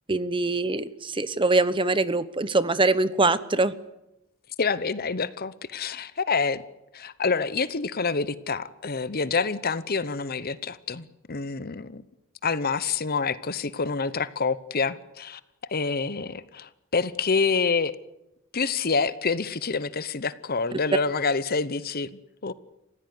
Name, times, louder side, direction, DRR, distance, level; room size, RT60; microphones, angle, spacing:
voice 1, 0.1-3.7, right 2 dB, 25° right, 15 dB, 0.9 m, -23 dB
voice 2, 4.6-6.6 6.9-12.0 12.4-15.4 15.7-17.9 18.5-22.5, left 4 dB, 45° left, 16 dB, 0.9 m, -27 dB
28.5 x 16.0 x 9.6 m, 0.92 s
head